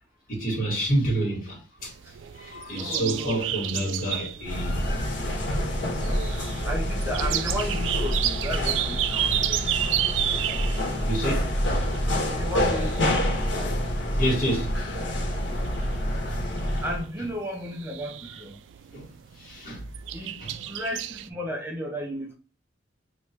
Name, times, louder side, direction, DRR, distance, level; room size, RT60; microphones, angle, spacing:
voice 1, 0.3-1.9 2.3-5.2 11.1-11.5 12.0-12.1 14.2-14.8 15.4-15.5 16.3-16.4 18.9-19.1 19.4-19.9 20.4-20.6, right 1 dB, 50° left, 1.9 m, -29 dB
sound 1, 1.8-21.3, right 12 dB, 85° right, 0.3 m, -32 dB
voice 2, 2.8-3.5 6.6-9.9 12.3-13.2 16.8-18.6 20.1-20.4 20.7-22.3, equal, 15° right, 0.6 m, -34 dB
sound 2, 4.4-17.1, equal, 75° left, 1.4 m, -27 dB
3.1 x 3.0 x 4.4 m
head